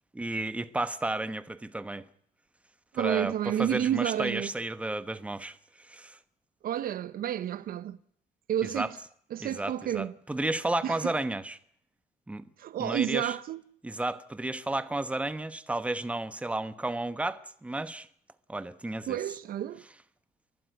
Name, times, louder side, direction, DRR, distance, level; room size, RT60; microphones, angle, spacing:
voice 1, 0.1-2.0 2.9-6.2 8.7-8.9 9.4-11.6 12.3-12.5 12.8-13.3 13.8-18.1 18.5-19.2, right 2 dB, 5° right, 1.0 m, -32 dB
voice 2, 2.9-4.5 6.6-8.0 8.5-9.0 9.3-10.1 10.8-11.1 12.6-13.6 19.1-19.8, right 11 dB, 60° right, 0.9 m, -30 dB
30.0 x 12.0 x 9.4 m
cardioid pair, 110°, 17 cm